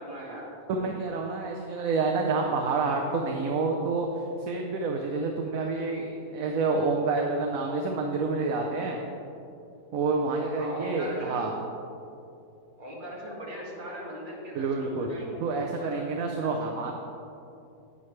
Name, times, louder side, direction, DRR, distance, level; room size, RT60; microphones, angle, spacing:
voice 1, 0.0-1.2 10.6-11.5 12.8-15.4 15.8-16.1 16.4-16.5, equal, 30° right, -5 dB, 2.1 m, -39 dB
voice 2, 0.7-9.0 9.9-11.5 14.5-15.1 15.4-16.9, right 3 dB, 65° right, 1 dB, 1.1 m, -28 dB
11.0 x 8.9 x 3.2 m, 2.7 s
omnidirectional pair, 1.7 m